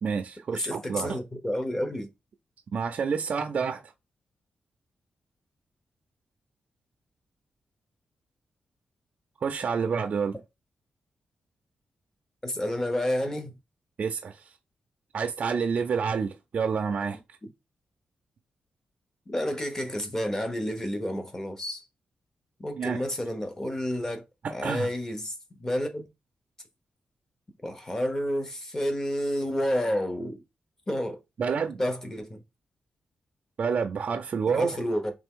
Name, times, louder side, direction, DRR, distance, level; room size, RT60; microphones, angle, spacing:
voice 1, 0.0-1.2 2.7-3.8 9.4-10.4 14.0-14.5 15.1-17.2 22.8-23.0 24.4-24.9 31.4-31.8 33.6-34.8, right 6 dB, 50° right, 0.4 m, -28 dB
voice 2, 0.5-2.1 12.4-13.5 19.3-21.8 22.6-24.2 24.5-26.1 27.6-30.4 30.9-31.2 31.8-32.4 34.5-35.1, equal, 15° left, 0.7 m, -30 dB
3.4 x 3.0 x 3.6 m
wide cardioid pair, 160°, 3 cm